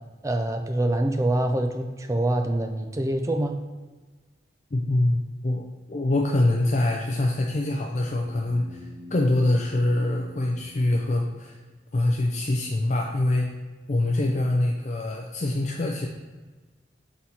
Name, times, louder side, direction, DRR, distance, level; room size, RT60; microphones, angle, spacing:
voice 1, 0.2-3.6, right 1 dB, 15° right, 5 dB, 0.4 m, -25 dB
voice 2, 4.7-11.6 11.9-13.5 13.9-16.1, left 1 dB, 40° left, 0 dB, 0.5 m, -24 dB
sound 1, 8.1-11.8, left 1 dB, 65° left, 1.1 m, -46 dB
6.1 x 4.1 x 4.2 m, 1.3 s
head